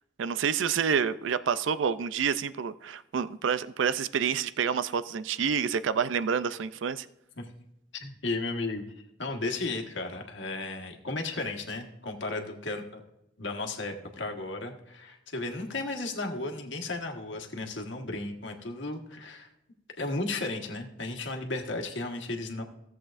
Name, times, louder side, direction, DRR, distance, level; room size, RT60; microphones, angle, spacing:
voice 1, 0.2-7.1, right 7 dB, 85° right, 14 dB, 0.4 m, -28 dB
voice 2, 7.9-13.0 13.4-19.5 20.0-22.6, left 2 dB, 80° left, 3 dB, 1.4 m, -34 dB
16.5 x 7.7 x 2.5 m, 0.87 s
head